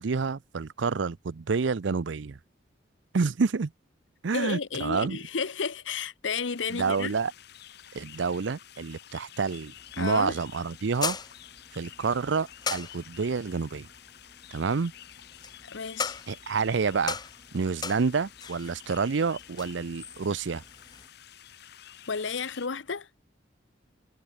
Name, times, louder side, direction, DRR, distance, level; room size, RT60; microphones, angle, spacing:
voice 1, 0.0-2.4 3.1-3.7 4.2-5.2 6.7-7.3 7.9-11.2 11.8-13.9 14.5-14.9 16.3-17.2 17.5-20.6, right 5 dB, 75° right, 0.6 m, -28 dB
voice 2, 4.3-7.1 10.0-10.3 15.6-16.2 22.1-23.1, left 5 dB, 85° left, 0.9 m, -32 dB
sound 1, 6.5-22.7, left 11 dB, 60° left, 1.2 m, -50 dB
sound 2, 9.8-21.1, left 5 dB, 25° left, 1.2 m, -40 dB
head